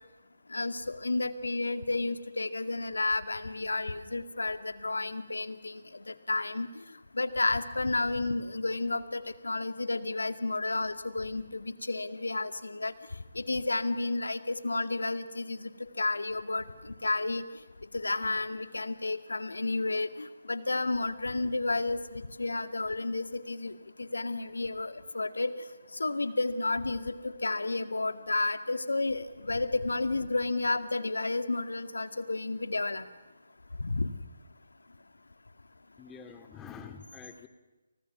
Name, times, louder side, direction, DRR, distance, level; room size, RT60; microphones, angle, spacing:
voice 1, 0.5-5.8 6.1-6.7 7.1-12.9 13.4-15.7 16.0-17.4 17.9-23.7 24.0-25.5 26.0-33.0 33.8-34.1, left 2 dB, 70° left, 10 dB, 2.1 m, -31 dB
voice 2, 36.0-37.5, left 6 dB, 10° left, 8 dB, 2.3 m, -47 dB
29.5 x 29.5 x 6.0 m, 1.2 s
figure-of-eight pair, 145°, 0 cm